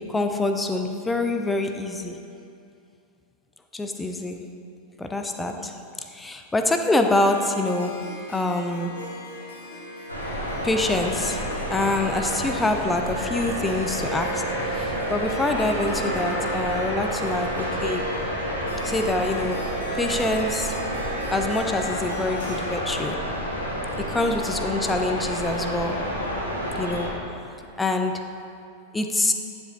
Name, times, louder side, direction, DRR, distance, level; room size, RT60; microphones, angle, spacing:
voice 1, 0.0-2.2 3.7-4.4 5.0-5.8 6.1-9.0 10.6-18.1 18.8-20.8 21.3-23.3 24.0-26.1 26.8-27.3 27.8-28.4 28.9-29.3, left 2 dB, 10° left, 6 dB, 0.5 m, -26 dB
Harp, 7.2-22.7, left 2 dB, 65° left, 1.1 m, -39 dB
sound 1, 10.1-27.1, equal, 85° left, 1.5 m, -30 dB
sound 2, 13.1-21.6, right 5 dB, 65° right, 1.2 m, -34 dB
9.9 x 7.1 x 2.7 m, 2.6 s
figure-of-eight pair, 90°, 0 cm